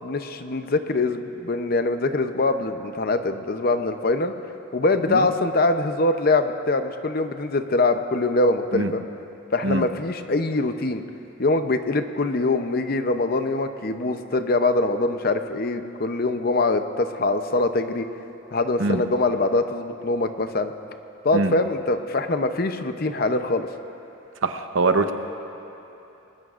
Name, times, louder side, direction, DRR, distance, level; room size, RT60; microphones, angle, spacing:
voice 1, 0.0-4.3 4.7-9.0 9.5-11.0 11.4-18.0 18.5-20.7 21.2-23.7, left 2 dB, 45° left, 8 dB, 0.7 m, -23 dB
voice 2, 24.4-25.1, right 3 dB, 75° right, 7 dB, 0.9 m, -22 dB
28.0 x 20.5 x 2.5 m, 3.0 s
head